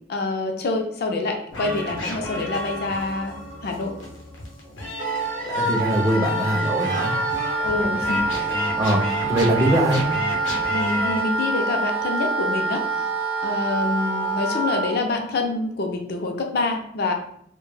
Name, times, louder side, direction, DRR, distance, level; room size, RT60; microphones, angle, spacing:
voice 1, 0.1-3.4 3.6-3.9 7.6-8.5 10.7-13.1 13.4-17.1, left 3 dB, 55° left, 3 dB, 0.4 m, -26 dB
sound 1, 1.5-11.2, left 1 dB, 90° left, 0.7 m, -32 dB
Wind instrument woodwind instrument, 5.0-15.0, right 3 dB, 70° right, 0.5 m, -26 dB
voice 2, 5.4-7.1 8.8-10.0, equal, 15° right, 1 dB, 0.3 m, -22 dB
2.1 x 2.0 x 3.1 m, 0.69 s
head